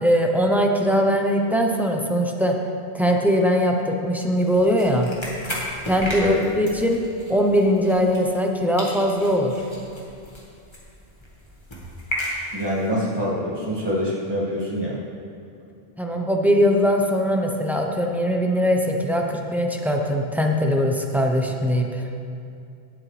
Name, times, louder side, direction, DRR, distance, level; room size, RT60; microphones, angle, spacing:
voice 1, 0.0-2.6 2.9-5.1 5.8-7.0 7.3-9.5 16.0-22.0, equal, ahead, 1 dB, 0.6 m, -21 dB
sound 1, 4.4-8.5 8.8-12.9, equal, 20° left, 1.7 m, -34 dB
voice 2, 12.5-15.0, equal, 20° right, -6 dB, 2.1 m, -25 dB
17.0 x 7.6 x 3.4 m, 2.5 s
omnidirectional pair, 1.3 m